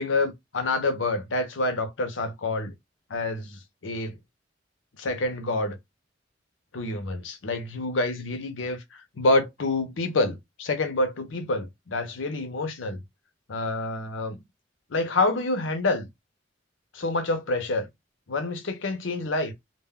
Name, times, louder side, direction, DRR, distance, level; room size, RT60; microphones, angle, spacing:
voice 1, 0.0-2.7 3.1-4.1 5.0-5.8 6.7-13.0 13.5-14.4 14.9-16.1 16.9-17.9 18.3-19.5, left 2 dB, 80° left, 0.6 m, -27 dB
2.2 x 2.1 x 3.5 m
head